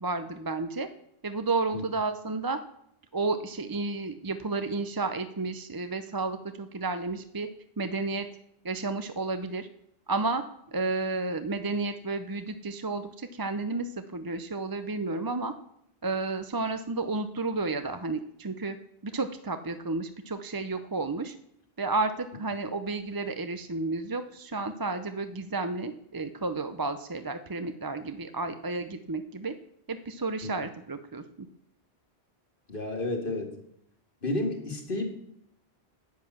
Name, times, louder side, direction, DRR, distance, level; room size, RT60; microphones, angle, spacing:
voice 1, 0.0-0.9 1.2-2.6 3.1-7.5 7.8-8.3 8.6-9.7 10.1-10.4 10.7-15.5 16.0-18.8 19.0-21.3 21.8-29.5 29.9-31.5, right 3 dB, 25° right, 9 dB, 0.5 m, -32 dB
voice 2, 32.7-33.5 34.2-35.1, left 2 dB, 55° left, 4 dB, 2.2 m, -31 dB
10.5 x 9.7 x 7.2 m, 0.75 s
omnidirectional pair, 1.1 m